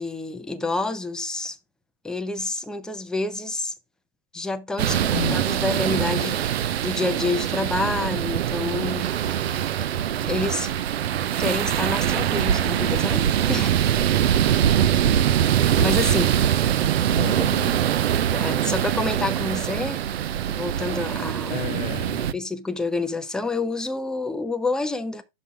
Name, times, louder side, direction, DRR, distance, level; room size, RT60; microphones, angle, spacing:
voice 1, 0.0-1.6 2.0-3.7 4.3-6.5 6.8-9.1 10.1-10.7 11.4-13.8 15.8-16.3 18.3-20.0 20.5-21.6 22.3-25.2, left 3 dB, ahead, 0.4 m, -28 dB
sound 1, 4.8-22.3, right 10 dB, 80° right, 0.7 m, -23 dB
voice 2, 4.9-5.4 17.0-17.9 21.5-22.4, left 11 dB, 60° left, 0.8 m, -33 dB
6.1 x 5.5 x 4.6 m
hypercardioid pair, 135°, 31 cm